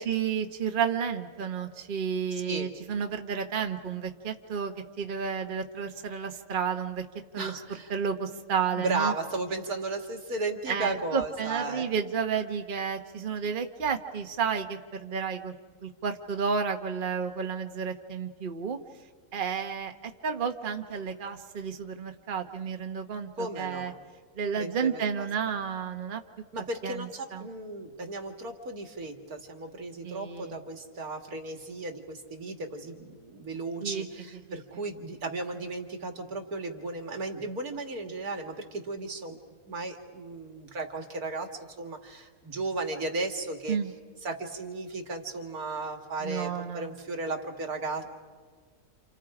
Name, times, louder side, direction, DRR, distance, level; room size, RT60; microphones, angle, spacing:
voice 1, 0.0-7.0 7.3-7.5 7.9-9.1 10.7-15.5 15.8-18.8 19.3-23.9 24.4-26.2 26.8-27.5 30.0-30.6 33.8-34.1 34.5-34.8 43.7-43.9 46.2-46.9, right 6 dB, 35° right, 5 dB, 1.2 m, -31 dB
voice 2, 2.3-2.7 7.4-7.9 8.7-11.9 23.4-24.0 24.5-25.3 26.5-39.4 39.7-43.8 44.2-48.1, right 2 dB, 75° right, 4 dB, 2.6 m, -35 dB
29.0 x 28.5 x 5.0 m, 1.5 s
omnidirectional pair, 1.6 m